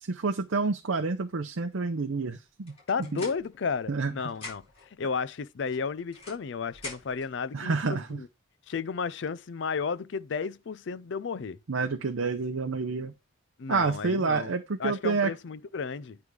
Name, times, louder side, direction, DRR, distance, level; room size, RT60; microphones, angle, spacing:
voice 1, 0.0-2.7 3.1-3.2 3.9-4.1 7.5-8.2 11.7-13.1 13.7-15.3, right 4 dB, 75° right, 0.6 m, -28 dB
sound 1, 2.7-4.0 4.3-4.9 5.7-7.3, left 3 dB, 30° left, 4.4 m, -44 dB
voice 2, 2.9-4.6 5.0-8.3 8.7-11.6 13.6-14.5 14.8-16.2, left 5 dB, 60° left, 0.4 m, -33 dB
9.5 x 3.5 x 4.8 m
head